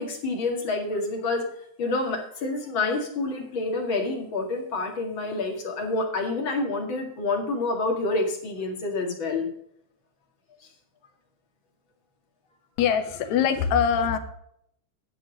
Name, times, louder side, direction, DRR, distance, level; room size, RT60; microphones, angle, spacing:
voice 1, 0.0-1.5 1.8-9.5, left 3 dB, 45° left, 2 dB, 2.5 m, -28 dB
voice 2, 12.8-14.2, left 7 dB, 70° left, 7 dB, 2.3 m, -23 dB
10.0 x 8.0 x 5.0 m, 0.71 s
omnidirectional pair, 3.5 m